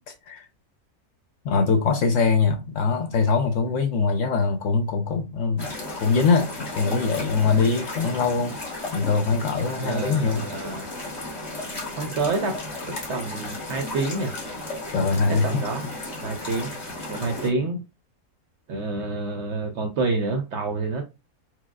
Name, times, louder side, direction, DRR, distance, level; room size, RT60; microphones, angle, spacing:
voice 1, 1.4-5.7 6.0-8.5 8.9-10.5 14.9-15.6, left 4 dB, 65° left, 0.8 m, -22 dB
sound 1, 5.6-17.5, left 2 dB, 30° left, 1.0 m, -34 dB
voice 2, 9.8-10.9 11.9-12.6 12.9-14.3 15.0-16.8 17.1-17.8 18.7-21.0, right 3 dB, 65° right, 0.7 m, -28 dB
4.6 x 2.0 x 2.3 m
omnidirectional pair, 1.6 m